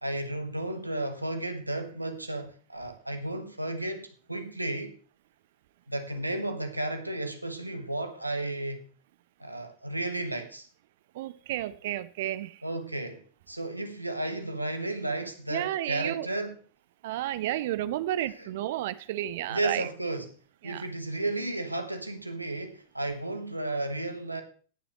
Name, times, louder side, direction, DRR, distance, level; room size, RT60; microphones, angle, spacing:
voice 1, 0.0-5.0 5.9-8.8 9.4-10.7 12.6-16.6 18.4-18.5 19.5-20.3 20.6-24.4, right 2 dB, 85° right, 7 dB, 1.3 m, -33 dB
voice 2, 11.1-12.6 15.5-16.3 17.0-19.9 20.6-20.8, right 13 dB, 55° right, 15 dB, 0.7 m, -32 dB
18.5 x 7.1 x 3.1 m, 0.40 s
figure-of-eight pair, 90°, 0 cm